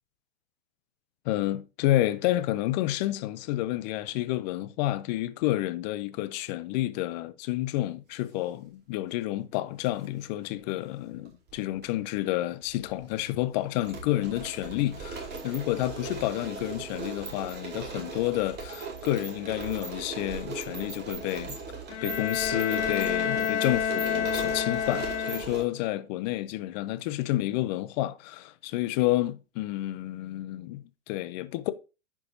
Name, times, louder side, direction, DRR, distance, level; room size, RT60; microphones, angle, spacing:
voice 1, 1.2-21.6 22.0-31.7, left 15 dB, 35° left, 0.6 m, -30 dB
sound 1, 9.8-10.1 11.1-11.9 12.1-12.2 12.7-25.6, right 4 dB, 25° right, 2.3 m, -38 dB
Bowed string instrument, 21.9-25.8, left 8 dB, 60° left, 1.1 m, -29 dB
11.0 x 4.7 x 2.7 m
hypercardioid pair, 120°, 39 cm